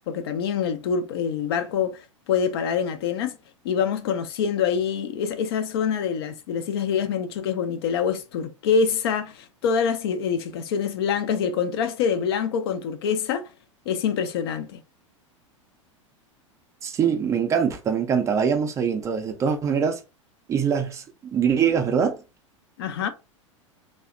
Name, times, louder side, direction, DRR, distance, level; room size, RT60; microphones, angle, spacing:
voice 1, 0.1-3.4 3.6-13.5 13.9-14.8 22.8-23.1, left 7 dB, 50° left, 0.4 m, -25 dB
voice 2, 16.8-20.0 20.5-22.2, right 7 dB, 20° right, 0.4 m, -23 dB
2.7 x 2.1 x 2.4 m
figure-of-eight pair, 90°, 17 cm